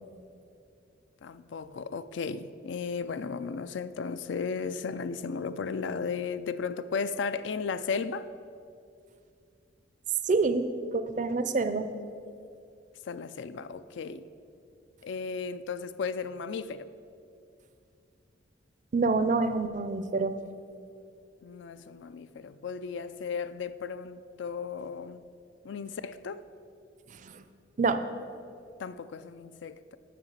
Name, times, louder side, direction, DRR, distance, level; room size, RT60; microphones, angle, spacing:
voice 1, 1.2-8.3 13.1-14.3 15.0-16.9 21.4-25.2 25.6-26.4 28.8-30.0, left 5 dB, 65° left, 0.4 m, -35 dB
voice 2, 10.2-11.9 18.9-20.4 27.2-27.4 27.8-28.0, right 3 dB, 40° right, 0.4 m, -27 dB
6.8 x 6.6 x 7.2 m
head